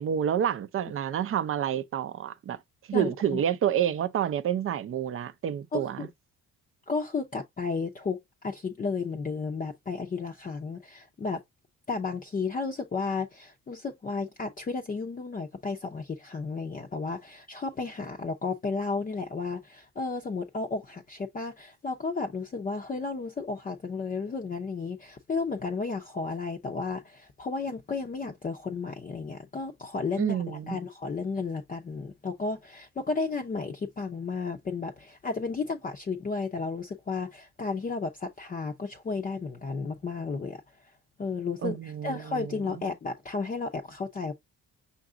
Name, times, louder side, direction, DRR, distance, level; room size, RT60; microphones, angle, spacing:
voice 1, 0.0-2.6 2.9-6.1 30.2-30.8 41.6-42.8, right 9 dB, 40° right, 0.5 m, -29 dB
voice 2, 2.9-3.4 5.7-6.1 6.9-8.2 8.4-11.4 11.9-40.6 41.2-44.3, left 4 dB, 25° left, 0.6 m, -33 dB
5.9 x 2.4 x 3.7 m
cardioid pair, 130°, 34 cm